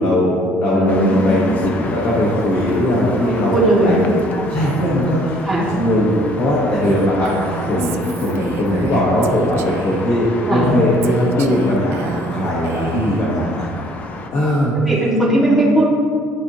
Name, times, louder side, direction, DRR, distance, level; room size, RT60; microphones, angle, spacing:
voice 1, 0.0-3.5 3.8-4.2 4.5-13.7 14.3-14.7, left 1 dB, 45° left, -6 dB, 1.2 m, -19 dB
voice 2, 0.7-1.2 3.2-4.0 5.5-5.7 10.5-10.7 13.4-13.6 14.9-15.9, right 1 dB, ahead, -8 dB, 1.8 m, -17 dB
sound 1, 0.9-14.3, left 2 dB, 30° left, 0.6 m, -31 dB
Female speech woman speaking, 6.8-10.1 11.0-13.3, right 6 dB, 50° right, 0.4 m, -29 dB
11.5 x 4.3 x 2.8 m, 2.2 s
cardioid pair, 155°, 5 cm